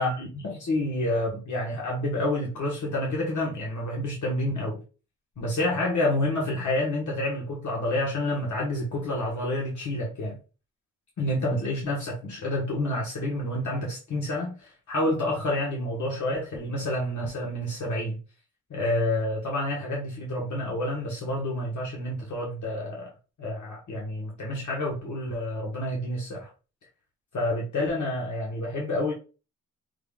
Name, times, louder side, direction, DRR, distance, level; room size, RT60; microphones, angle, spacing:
voice 1, 0.0-4.8 5.4-10.4 11.2-18.2 18.7-23.1 23.4-26.5 27.3-29.1, left 1 dB, 65° left, 1.4 m, -29 dB
5.7 x 3.6 x 2.4 m
cardioid pair, 90°, 32 cm